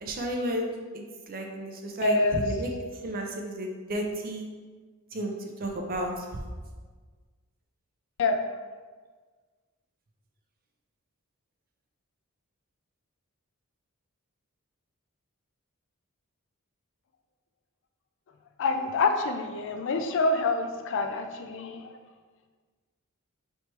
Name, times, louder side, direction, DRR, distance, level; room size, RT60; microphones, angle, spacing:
voice 1, 0.0-2.7 3.0-4.5 5.1-6.3, right 1 dB, 40° right, 2 dB, 0.5 m, -32 dB
voice 2, 2.0-2.4 8.2-8.4 18.6-22.0, left 3 dB, 60° left, 6 dB, 0.4 m, -26 dB
3.3 x 3.0 x 4.4 m, 1.4 s
head